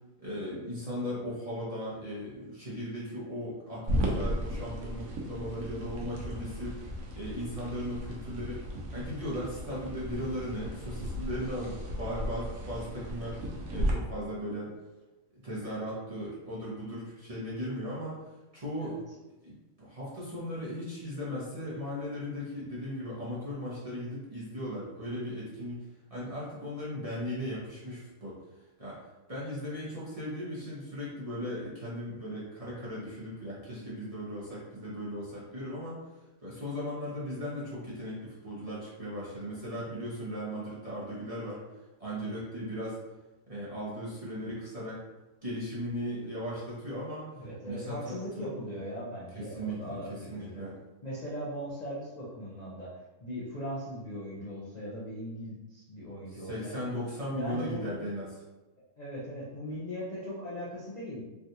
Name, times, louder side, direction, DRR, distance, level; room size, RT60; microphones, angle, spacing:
voice 1, 0.2-13.4 13.7-14.7 15.4-18.3 18.5-19.0 19.4-25.8 26.1-28.4 28.8-29.0 29.3-36.0 36.4-41.6 42.0-43.0 43.5-45.0 45.4-47.3 47.6-48.2 49.3-50.8 56.3-58.3, equal, 30° right, -9 dB, 0.8 m, -37 dB
sound 1, 3.9-13.9, equal, 75° right, 1.0 m, -35 dB
voice 2, 47.3-50.7 51.0-52.9 53.2-56.8 57.3-57.9 59.0-61.2, equal, 45° left, -8 dB, 0.5 m, -39 dB
3.4 x 2.4 x 2.7 m, 1.1 s
omnidirectional pair, 1.5 m